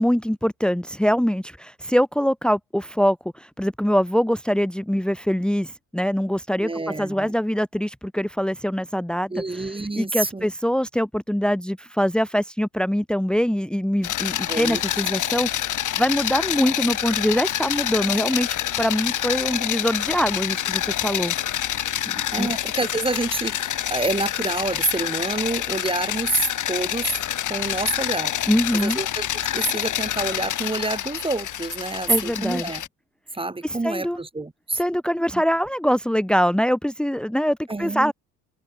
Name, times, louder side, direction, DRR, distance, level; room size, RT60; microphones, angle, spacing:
voice 1, 0.0-6.7 7.0-9.7 10.0-21.3 22.0-22.5 28.5-29.0 32.1-32.8 33.6-34.2 34.7-38.1, equal, ahead, 1.9 m, -23 dB
voice 2, 6.6-7.3 9.3-10.5 14.5-14.8 22.3-27.2 27.5-28.4 28.7-29.3 29.5-32.8 33.3-34.8 35.3-35.4 37.7-38.1, right 2 dB, 15° right, 2.2 m, -27 dB
sound 1, 14.0-32.9, left 11 dB, 55° left, 3.7 m, -27 dB
supercardioid pair, 75°, 36 cm